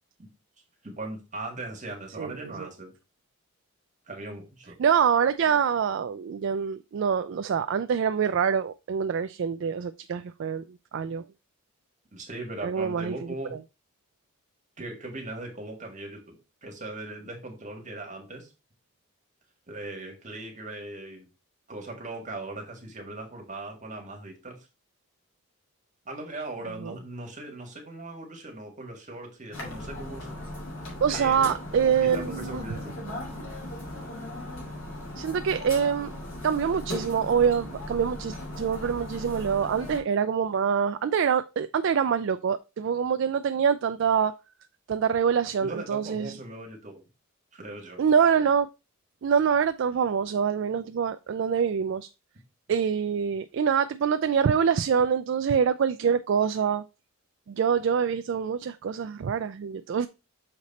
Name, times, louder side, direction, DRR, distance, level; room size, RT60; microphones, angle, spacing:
voice 1, 0.8-2.9 4.1-4.8 12.1-13.6 14.8-16.4 16.6-18.5 19.7-21.3 21.7-24.6 26.1-30.3 31.1-32.9 45.6-47.0 47.5-48.0, right 2 dB, 35° right, 1.8 m, -39 dB
voice 2, 2.2-2.7 4.8-10.6 10.9-11.2 12.6-13.1 26.8-26.9 31.0-32.6 35.2-36.1 36.4-44.3 44.9-46.3 48.0-48.7 49.2-52.1 52.7-56.8 57.5-60.1, right 7 dB, 55° right, 0.3 m, -25 dB
sound 1, 29.5-40.0, left 1 dB, 60° left, 2.8 m, -38 dB
6.6 x 4.2 x 4.1 m
head